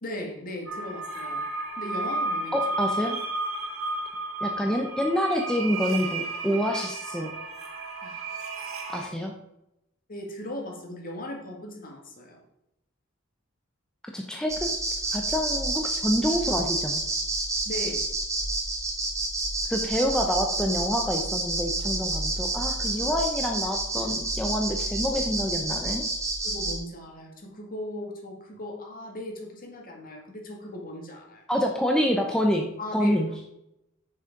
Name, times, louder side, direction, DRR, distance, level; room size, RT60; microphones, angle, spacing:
voice 1, 0.0-1.4 1.8-2.5 8.0-8.6 10.1-12.4 17.7-18.0 26.4-31.4 32.8-33.2, left 1 dB, 45° left, 1 dB, 2.0 m, -38 dB
sound 1, 0.7-9.0, right 2 dB, 80° right, 2.2 m, -32 dB
voice 2, 2.5-3.2 4.4-7.3 8.9-9.3 14.1-14.7 15.1-17.0 19.7-26.1 31.5-33.3, equal, 5° left, 1 dB, 0.8 m, -27 dB
sound 2, 14.5-26.8, right 2 dB, 15° right, 1.8 m, -29 dB
7.1 x 6.5 x 5.2 m, 0.85 s
head